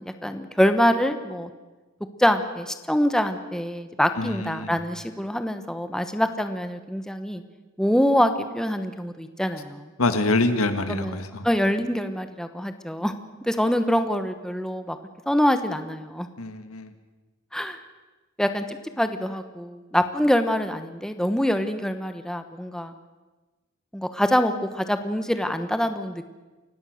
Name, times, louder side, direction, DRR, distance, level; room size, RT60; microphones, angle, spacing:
voice 1, 0.0-1.5 2.2-7.4 7.8-9.9 10.9-11.2 11.4-13.1 13.4-15.0 15.3-16.3 17.5-17.8 18.4-22.9 23.9-26.3, equal, 5° left, 8 dB, 1.1 m, -25 dB
voice 2, 4.2-4.8 10.0-11.5 16.4-16.9, left 2 dB, 80° left, 9 dB, 1.8 m, -25 dB
29.0 x 16.5 x 6.6 m, 1.2 s
head